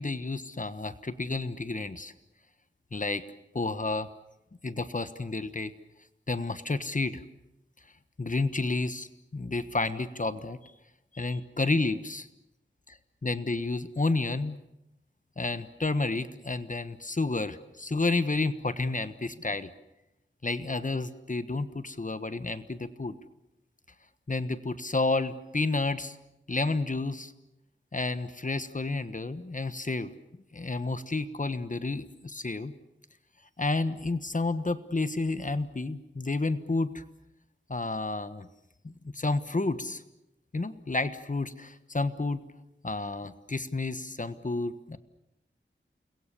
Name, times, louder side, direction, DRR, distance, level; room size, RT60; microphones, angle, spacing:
voice 1, 0.0-2.1 2.9-3.2 3.5-4.1 4.6-5.7 6.3-7.2 8.2-10.7 11.1-12.3 12.9-13.0 13.2-14.6 15.4-19.7 20.4-23.2 24.3-26.2 26.5-27.3 27.9-30.1 30.5-32.7 33.6-37.0 37.7-38.5 38.8-40.0 40.5-42.4 42.8-45.0, left 3 dB, 40° left, 12 dB, 1.3 m, -30 dB
29.0 x 22.0 x 7.0 m, 0.88 s
wide cardioid pair, 70°, 20 cm